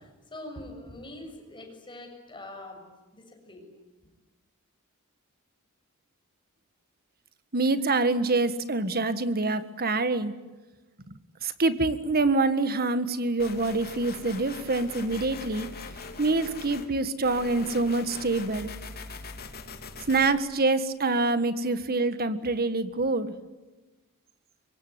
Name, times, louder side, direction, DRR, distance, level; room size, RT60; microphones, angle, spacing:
voice 1, 0.0-2.9 3.1-3.7, left 1 dB, 20° left, 3 dB, 7.1 m, -43 dB
voice 2, 7.5-10.3 11.1-15.7 16.2-18.7 20.1-23.3, right 3 dB, 45° right, 11 dB, 1.7 m, -26 dB
sound 1, 13.4-16.9 17.2-20.2, left 3 dB, 45° left, 3.1 m, -41 dB
25.0 x 24.0 x 9.8 m, 1.2 s
head